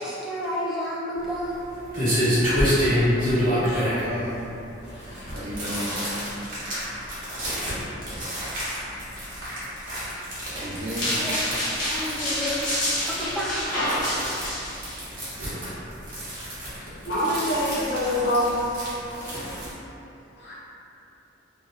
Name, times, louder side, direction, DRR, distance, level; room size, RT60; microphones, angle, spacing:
voice 1, 0.0-1.7 11.1-11.5 11.8-12.7 13.0-13.7, equal, ahead, -8 dB, 0.4 m, -31 dB
sound 1, 1.2-19.7, equal, 45° right, 0.8 m, -29 dB
voice 2, 3.1-4.4 5.3-5.9 10.4-11.1 15.1-15.7, equal, 85° right, -6 dB, 0.6 m, -34 dB
voice 3, 4.9-5.3 6.8-7.0 17.1-19.7 20.4-20.5, equal, 55° left, -7 dB, 0.6 m, -27 dB
sound 2, 11.0-15.0, left 1 dB, 80° left, 0.9 m, -28 dB
2.5 x 2.0 x 2.5 m, 2.8 s
head